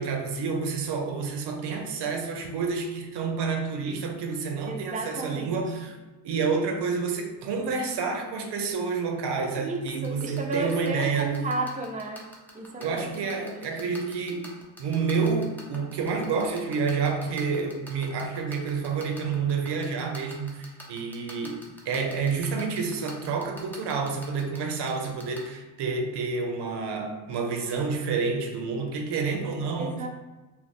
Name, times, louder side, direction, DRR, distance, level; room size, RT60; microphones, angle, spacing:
voice 1, 0.0-6.0 6.2-11.4 12.8-14.5 14.8-30.0, right 5 dB, 65° right, 4 dB, 0.6 m, -29 dB
voice 2, 4.7-5.6 9.6-12.3 12.5-13.7 29.8-30.1, right 2 dB, 20° right, 2 dB, 0.5 m, -33 dB
sound 1, 9.9-25.4, left 1 dB, 5° left, 0.9 m, -44 dB
2.8 x 2.4 x 3.4 m, 1.2 s
supercardioid pair, 60°, 44 cm